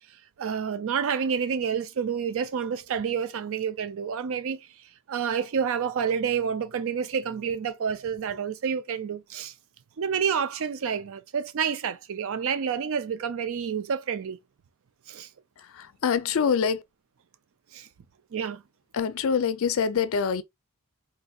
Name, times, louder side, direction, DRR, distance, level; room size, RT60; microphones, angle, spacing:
voice 1, 0.4-4.6 5.1-9.5 10.0-14.4 15.1-15.3 17.7-17.9 18.3-18.6, right 7 dB, 65° right, 0.4 m, -29 dB
voice 2, 15.6-16.8 18.9-20.4, left 6 dB, 65° left, 0.4 m, -25 dB
3.8 x 2.7 x 2.3 m
head